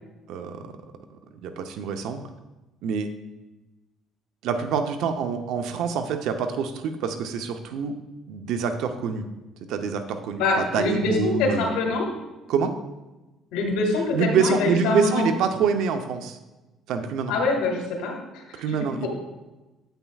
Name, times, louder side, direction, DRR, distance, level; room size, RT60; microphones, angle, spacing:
voice 1, 0.3-0.7 1.4-2.2 2.8-3.1 4.4-7.9 8.3-9.2 9.7-11.7 12.5-12.7 14.1-16.4 16.9-17.3 18.5-19.1, right 6 dB, 75° right, 7 dB, 0.6 m, -26 dB
voice 2, 10.4-12.1 13.5-15.3 17.3-18.6, left 3 dB, 90° left, 1 dB, 1.8 m, -25 dB
9.1 x 8.1 x 2.3 m, 1.1 s
cardioid pair, 110°, 0 cm